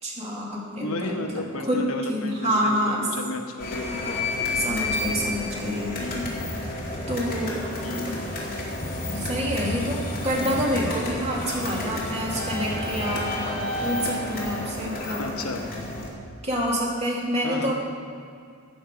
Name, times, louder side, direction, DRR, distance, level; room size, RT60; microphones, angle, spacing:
voice 1, 0.0-1.8 2.1-3.1 4.5-6.0 7.1-7.7 9.1-15.2 16.4-17.7, equal, 30° right, -3 dB, 2.4 m, -27 dB
voice 2, 0.8-2.8 3.1-4.2 6.0-6.5 7.8-8.3 15.2-15.6 17.4-17.7, left 2 dB, 75° left, 4 dB, 1.1 m, -33 dB
sound 1, 3.6-16.1, left 1 dB, 45° left, 2.6 m, -30 dB
14.0 x 8.7 x 5.1 m, 2.3 s
head